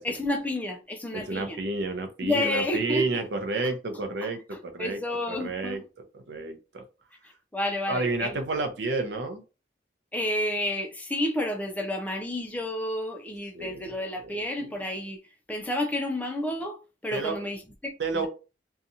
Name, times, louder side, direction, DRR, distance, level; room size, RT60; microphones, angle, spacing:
voice 1, 0.0-1.6 2.2-3.1 4.8-5.8 7.5-8.4 10.1-15.2 15.5-18.3, left 1 dB, 10° left, 0.4 m, -30 dB
voice 2, 1.1-5.0 5.3-6.8 7.9-9.4 13.5-14.7 17.1-17.4 18.0-18.3, right 3 dB, 75° right, 0.6 m, -31 dB
2.7 x 2.3 x 2.6 m
head